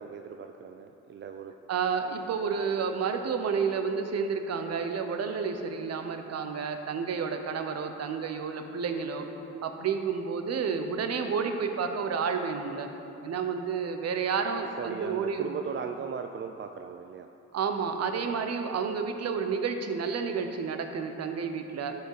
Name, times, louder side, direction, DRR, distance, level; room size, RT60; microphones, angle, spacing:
voice 1, 0.0-1.5 14.8-17.3, right 6 dB, 40° right, 6 dB, 0.4 m, -38 dB
voice 2, 1.7-9.3 9.6-12.9 13.2-15.6 17.5-22.0, right 6 dB, 55° right, 6 dB, 0.9 m, -30 dB
12.5 x 5.7 x 4.8 m, 2.9 s
cardioid pair, 90°, 30 cm